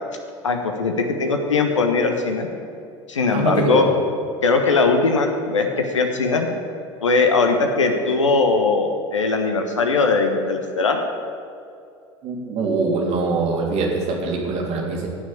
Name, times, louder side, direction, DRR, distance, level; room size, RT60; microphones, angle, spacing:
voice 1, 0.4-2.5 3.1-3.9 4.4-6.5 7.0-11.0, left 4 dB, 75° left, 5 dB, 1.3 m, -20 dB
voice 2, 3.3-3.9 12.2-15.1, right 3 dB, 45° right, 0 dB, 3.1 m, -23 dB
18.0 x 6.2 x 8.7 m, 2.5 s
figure-of-eight pair, 70°, 16 cm